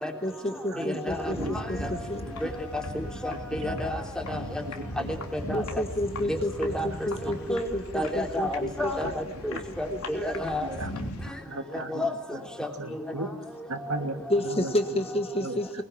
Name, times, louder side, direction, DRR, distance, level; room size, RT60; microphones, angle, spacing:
voice 1, 0.2-2.2 5.5-9.1 9.5-9.6 9.9-10.0 10.3-10.4 11.8-11.9 12.8-13.4 14.3-15.8, left 1 dB, 30° left, 7 dB, 1.5 m, -31 dB
voice 2, 0.8-1.3 1.8-1.9 2.4-2.5 2.9-4.0 4.3-4.4 5.3-5.6 6.3-7.7 7.9-10.7 11.7-12.1 12.6-12.7, left 1 dB, 5° left, 3 dB, 3.4 m, -31 dB
sound 1, 1.1-11.3, left 1 dB, 90° left, 3.3 m, -38 dB
voice 3, 4.8-5.1 8.6-8.7 9.5-9.6 10.6-12.0 12.8-13.3 13.7-14.2 14.6-14.7 15.4-15.6, right 2 dB, 70° right, 5 dB, 2.7 m, -36 dB
24.0 x 21.0 x 9.0 m, 0.84 s
head